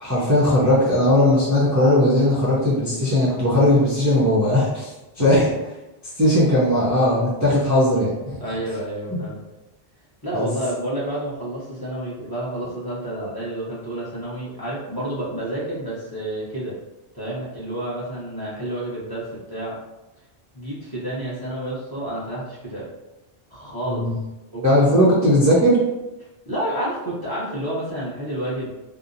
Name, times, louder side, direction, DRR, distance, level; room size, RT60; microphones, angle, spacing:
voice 1, 0.0-5.5 6.2-8.4 9.1-9.2 10.3-10.5 23.9-24.1 24.6-25.8, left 1 dB, 25° right, -9 dB, 0.4 m, -18 dB
voice 2, 8.4-9.4 10.2-16.7 17.1-19.8 20.5-22.9 23.5-24.1 24.5-25.1 26.4-28.7, right 1 dB, 25° left, -9 dB, 0.7 m, -29 dB
2.7 x 2.0 x 2.4 m, 1.0 s
omnidirectional pair, 1.1 m